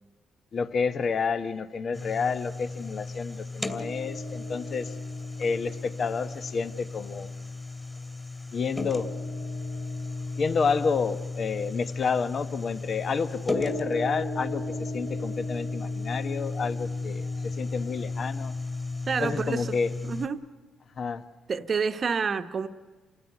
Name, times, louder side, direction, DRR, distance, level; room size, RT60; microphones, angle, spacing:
voice 1, 0.5-4.9 5.4-7.3 8.5-9.1 10.4-18.5 19.2-19.9 21.0-21.2, left 5 dB, 50° left, 1.1 m, -29 dB
sound 1, 1.9-20.3, left 3 dB, 20° left, 2.7 m, -34 dB
voice 2, 19.1-19.7 20.0-20.5 21.5-22.7, right 5 dB, 45° right, 1.0 m, -28 dB
28.0 x 15.5 x 9.6 m
cardioid pair, 90°, 0 cm